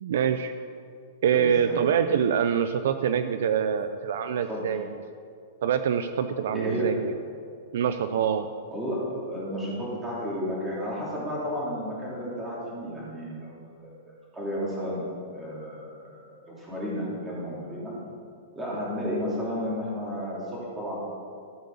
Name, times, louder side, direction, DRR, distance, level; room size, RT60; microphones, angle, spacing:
voice 1, 0.0-0.5 1.2-4.9 5.6-7.1 7.7-8.5, right 8 dB, 55° right, 10 dB, 0.6 m, -25 dB
voice 2, 1.3-1.8 4.5-4.6 6.5-6.9 8.7-15.0 15.3-17.9 18.5-21.0, equal, 10° right, -6 dB, 3.0 m, -33 dB
13.5 x 8.0 x 7.0 m, 2.3 s
supercardioid pair, 180°, 0 cm